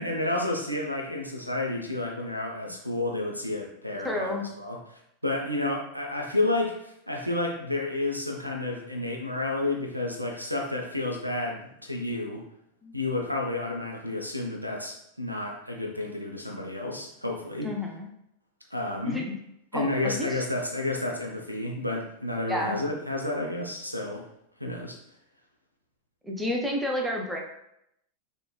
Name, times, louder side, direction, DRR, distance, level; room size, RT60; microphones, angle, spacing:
voice 1, 0.0-4.8 5.2-12.4 12.9-17.7 18.7-19.2 19.7-24.2 24.6-25.0, left 2 dB, 90° right, 0 dB, 0.4 m, -31 dB
voice 2, 4.0-4.5 12.8-12.9 17.6-18.1 19.1-19.4 19.7-20.4 22.5-22.8 26.2-27.4, left 1 dB, 5° right, 0 dB, 0.4 m, -30 dB
2.9 x 2.1 x 2.2 m, 0.78 s
figure-of-eight pair, 90°, 0 cm